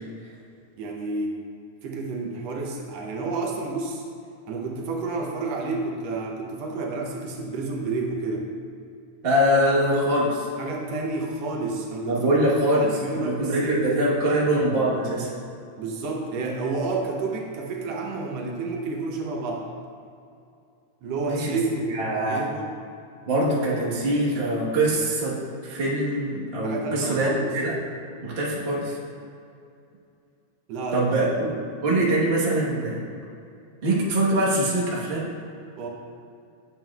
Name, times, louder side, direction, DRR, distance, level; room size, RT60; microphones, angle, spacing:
voice 1, 0.8-1.4 1.8-4.0 4.5-8.5 10.6-12.2 12.8-14.5 15.8-19.7 21.0-22.7 26.6-27.5 30.7-31.3 35.8-35.9, right 3 dB, 70° right, 0 dB, 1.8 m, -30 dB
voice 2, 9.2-10.5 12.1-15.3 21.3-21.6 21.9-22.5 23.3-27.8 28.2-29.0 30.9-33.0 33.8-35.3, right 1 dB, 85° right, -6 dB, 0.5 m, -23 dB
9.2 x 7.3 x 2.3 m, 2.5 s
omnidirectional pair, 3.3 m